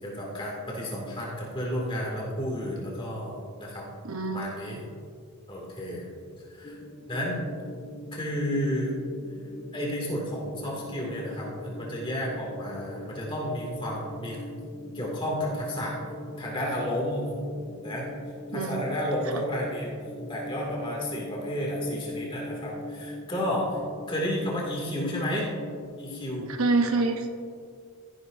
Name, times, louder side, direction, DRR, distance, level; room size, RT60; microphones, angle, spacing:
voice 1, 0.0-3.8 4.3-4.8 5.5-6.1 6.5-6.8 7.1-7.4 8.1-8.9 9.7-14.4 14.9-16.0 16.4-17.3 17.8-18.1 18.5-19.9 20.3-23.7 24.1-25.5 26.0-26.5, equal, 25° left, -3 dB, 2.4 m, -31 dB
voice 2, 4.0-4.5 18.5-18.8 19.3-19.4 26.5-27.3, right 3 dB, 70° right, 5 dB, 0.9 m, -26 dB
sound 1, 6.6-25.8, left 1 dB, 40° left, 1.0 m, -41 dB
15.0 x 10.5 x 2.7 m, 2.2 s
head